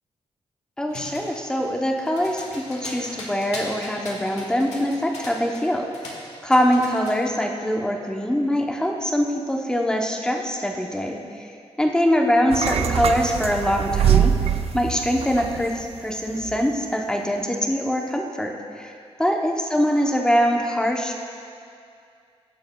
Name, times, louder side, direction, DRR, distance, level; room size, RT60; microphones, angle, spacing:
voice 1, 0.8-11.5 11.8-14.3 14.7-18.9 19.2-21.2, equal, 5° left, 1 dB, 0.7 m, -23 dB
sound 1, 0.9-5.7 5.9-7.2, left 2 dB, 85° left, 1.6 m, -39 dB
sound 2, 12.5-15.9 16.3-16.6, right 9 dB, 65° right, 0.4 m, -23 dB
16.0 x 7.0 x 2.3 m, 2.4 s
wide cardioid pair, 135°, 11 cm